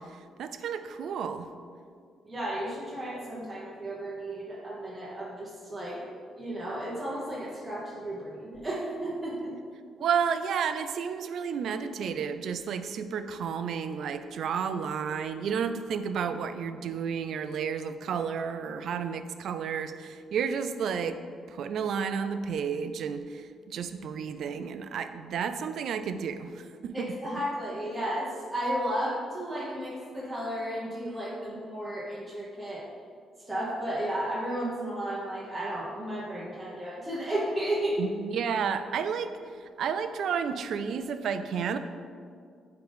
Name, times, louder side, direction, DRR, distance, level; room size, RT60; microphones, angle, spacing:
voice 1, 0.0-1.5 10.0-21.2 21.5-27.1 38.0-41.8, right 7 dB, 70° right, 10 dB, 0.4 m, -32 dB
voice 2, 2.2-9.5 26.9-32.9 33.5-38.0, right 1 dB, 15° right, -6 dB, 1.1 m, -33 dB
9.0 x 3.9 x 3.5 m, 2.2 s
cardioid pair, 100°, 0 cm